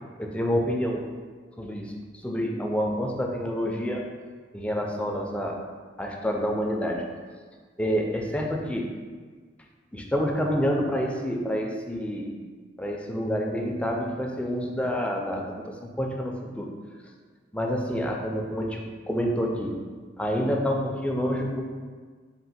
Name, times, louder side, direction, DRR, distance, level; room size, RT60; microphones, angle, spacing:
voice 1, 0.2-1.0 1.6-4.0 4.5-5.6 6.0-7.0 7.8-8.9 9.9-12.3 12.8-16.7 17.5-18.8 19.1-19.8 20.2-21.6, equal, 5° left, 0 dB, 0.4 m, -28 dB
3.7 x 2.4 x 4.2 m, 1.5 s
head